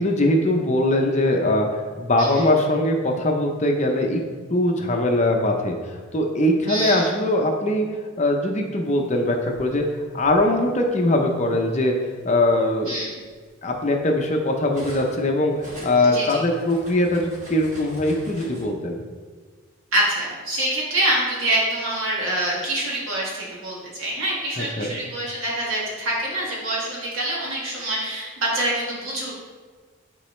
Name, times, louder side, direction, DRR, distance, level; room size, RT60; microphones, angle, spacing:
voice 1, 0.0-1.7 2.0-4.2 4.5-5.8 6.1-7.9 8.2-9.8 10.1-11.9 12.2-13.0 13.6-15.5 15.8-19.0 24.6-24.9, left 1 dB, 35° left, 2 dB, 0.6 m, -21 dB
voice 2, 6.7-7.1 12.9-13.1 16.0-16.4 19.9-29.3, right 1 dB, 70° right, -4 dB, 1.9 m, -25 dB
Cutlery silverware, 9.1-10.4 11.4-11.5 12.0-15.2 15.5-18.6, equal, 35° right, 1.6 m, -43 dB
9.8 x 3.8 x 3.2 m, 1.5 s
head